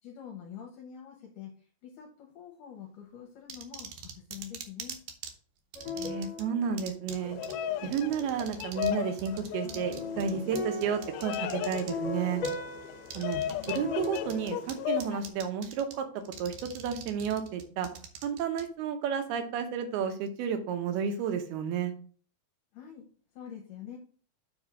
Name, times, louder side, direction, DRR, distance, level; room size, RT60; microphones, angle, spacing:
voice 1, 0.0-5.1 22.7-23.1 23.3-24.0, left 8 dB, 70° left, 1 dB, 2.4 m, -46 dB
sound 1, 3.5-5.3 5.7-6.4 6.8-7.2 7.4-7.5 7.9-8.9 9.2-11.9 12.4-12.6 13.1-13.8 14.0-14.7 15.0-15.9 16.3-18.6, right 7 dB, 70° right, 2.0 m, -42 dB
sound 2, 5.7-8.9 9.6-15.3, left 3 dB, 55° left, 2.5 m, -39 dB
voice 2, 6.0-7.4 7.8-12.4 13.1-13.4 13.7-16.1 16.4-17.9 18.2-21.9, right 7 dB, 90° right, 7 dB, 3.0 m, -32 dB
Bird vocalization bird call bird song, 7.2-15.2, left 12 dB, 90° left, 2.5 m, -36 dB
7.1 x 3.6 x 6.0 m, 0.44 s
omnidirectional pair, 4.4 m